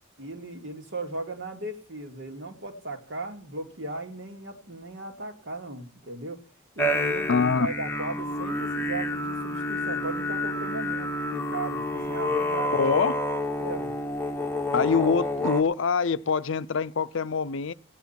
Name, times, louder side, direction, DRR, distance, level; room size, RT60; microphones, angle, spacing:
voice 1, 0.2-6.4 6.8-12.9 13.6-13.9, right 2 dB, 65° right, 2.5 m, -37 dB
sound 1, 6.8-15.6, left 1 dB, 10° left, 0.8 m, -29 dB
voice 2, 7.3-7.7 12.8-13.1 14.7-17.7, left 5 dB, 70° left, 0.5 m, -24 dB
16.0 x 9.6 x 5.8 m
head